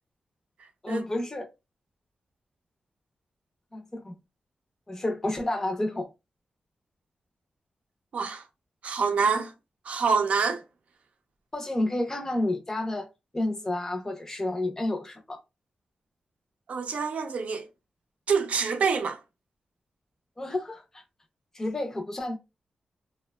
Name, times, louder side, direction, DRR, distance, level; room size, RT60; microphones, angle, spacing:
voice 1, 0.8-1.5 3.7-4.2 4.9-6.1 11.5-13.1 13.3-15.4 20.4-20.8 21.5-22.4, left 1 dB, 20° left, 0.5 m, -30 dB
voice 2, 8.1-8.4 8.8-9.5 9.9-10.6 16.7-17.7 18.3-19.2, right 5 dB, 70° right, 0.4 m, -26 dB
2.8 x 2.1 x 2.2 m
wide cardioid pair, 145°, 2 cm